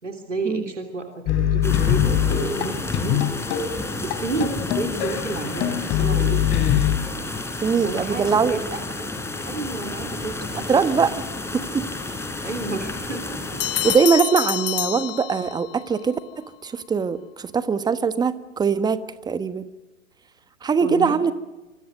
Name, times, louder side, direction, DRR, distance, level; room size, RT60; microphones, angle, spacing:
voice 1, 0.0-3.7 4.0-6.8 7.8-9.1 9.5-11.0 12.4-13.6 20.8-21.2, right 3 dB, 85° right, 5 dB, 3.4 m, -31 dB
sound 1, 1.3-7.0, left 10 dB, 30° left, 3.0 m, -23 dB
sound 2, 1.6-14.0, left 2 dB, 5° left, 3.9 m, -31 dB
voice 2, 7.6-8.6 10.7-11.1 11.5-11.9 13.8-19.0 19.2-19.6 20.6-21.3, right 5 dB, 10° right, 14 dB, 1.3 m, -22 dB
Bell, 13.6-15.8, left 14 dB, 50° left, 1.2 m, -27 dB
26.5 x 26.5 x 6.5 m, 1.1 s
figure-of-eight pair, 105°, 36 cm